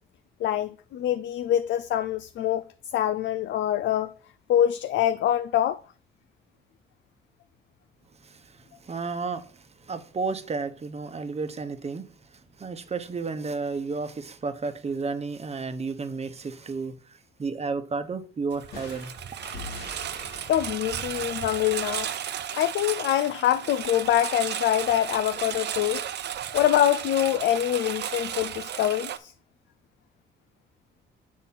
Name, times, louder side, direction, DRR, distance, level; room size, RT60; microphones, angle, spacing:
voice 1, 0.4-2.7 2.9-4.1 4.5-5.8 20.5-22.1 22.5-26.1 26.5-29.3, left 11 dB, 65° left, 0.4 m, -25 dB
voice 2, 8.2-12.1 12.6-19.1, right 4 dB, 30° right, 0.9 m, -32 dB
Engine, 18.5-29.2, right 10 dB, 60° right, 0.6 m, -34 dB
sound 1, 18.7-22.4, left 4 dB, 90° left, 1.8 m, -44 dB
7.3 x 4.1 x 5.6 m
cardioid pair, 90°, 20 cm